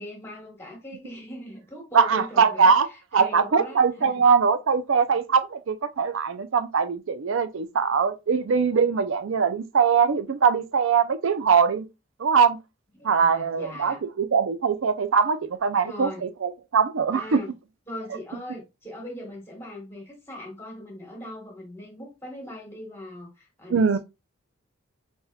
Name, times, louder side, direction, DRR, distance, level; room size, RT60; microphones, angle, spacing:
voice 1, 0.0-4.2 13.0-14.0 15.8-16.2 17.1-17.5 17.9-24.0, left 1 dB, 10° left, 1.3 m, -40 dB
voice 2, 1.9-2.9 3.1-11.9 12.2-12.6 13.0-17.4 23.7-24.0, right 6 dB, 60° right, 0.4 m, -22 dB
4.2 x 3.5 x 2.3 m
head